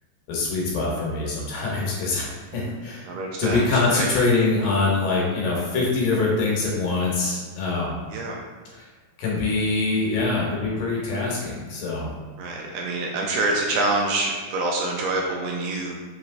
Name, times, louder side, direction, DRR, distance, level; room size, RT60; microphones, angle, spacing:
voice 1, 0.3-3.1 3.4-8.0 8.7-8.9 9.2-12.1, left 3 dB, 75° left, -4 dB, 2.5 m, -24 dB
voice 2, 3.0-4.1 8.1-8.3 12.4-15.9, right 2 dB, 80° right, -1 dB, 1.8 m, -26 dB
5.7 x 3.0 x 2.5 m, 1.5 s
omnidirectional pair, 3.8 m